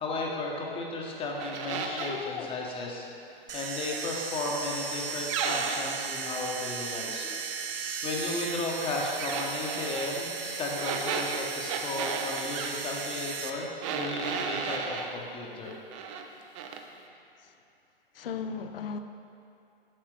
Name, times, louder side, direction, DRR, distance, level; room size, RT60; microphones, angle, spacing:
voice 1, 0.0-3.1 3.5-7.4 8.0-15.8, left 2 dB, 20° left, -1 dB, 0.9 m, -34 dB
sound 1, 1.4-2.3 5.3-6.1 9.2-10.1 10.8-12.7 13.8-15.1 15.6-16.3 16.5-16.8, right 5 dB, 35° right, 0.5 m, -34 dB
voice 2, 2.0-2.5 18.1-19.0, left 6 dB, 70° left, 8 dB, 0.5 m, -36 dB
sound 2, 3.5-13.5, right 5 dB, 70° right, 0.7 m, -36 dB
7.5 x 6.4 x 3.3 m, 2.8 s
figure-of-eight pair, 110°, 29 cm